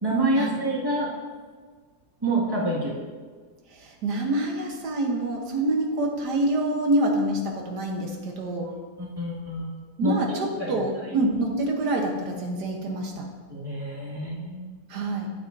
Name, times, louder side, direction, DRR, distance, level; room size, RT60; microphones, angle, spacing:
voice 1, 0.0-1.1 2.2-3.0 8.6-9.6 10.0-10.1 10.6-10.7 13.5-14.7, right 1 dB, 15° right, -6 dB, 1.7 m, -27 dB
voice 2, 3.7-8.7 10.0-13.3 14.9-15.3, right 1 dB, 85° right, 2 dB, 1.6 m, -26 dB
9.3 x 8.5 x 2.6 m, 1.5 s
omnidirectional pair, 1.7 m